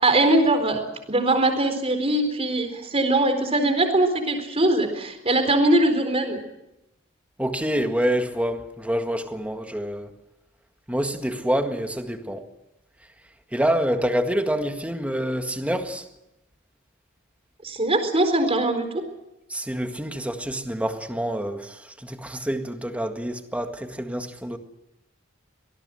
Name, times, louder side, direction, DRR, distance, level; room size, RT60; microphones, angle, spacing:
voice 1, 0.0-0.8 1.1-6.4 17.6-19.0, right 1 dB, 30° right, 4.1 m, -21 dB
voice 2, 7.4-10.1 10.9-12.5 13.5-16.0 19.5-24.6, equal, 5° right, 1.8 m, -27 dB
24.5 x 18.5 x 7.8 m
head